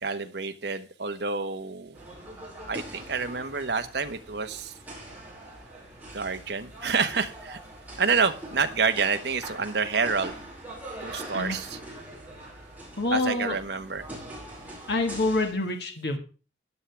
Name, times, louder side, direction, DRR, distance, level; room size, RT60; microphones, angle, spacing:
voice 1, 0.0-2.0 2.6-4.7 6.1-7.6 8.0-10.4 11.0-11.8 13.1-14.0, right 5 dB, 60° right, 8 dB, 1.1 m, -28 dB
sound 1, 1.9-15.5, right 1 dB, 10° right, 5.1 m, -43 dB
voice 2, 13.0-13.6 14.9-16.2, left 2 dB, 60° left, 3 dB, 1.6 m, -26 dB
14.0 x 10.0 x 3.4 m, 0.35 s
head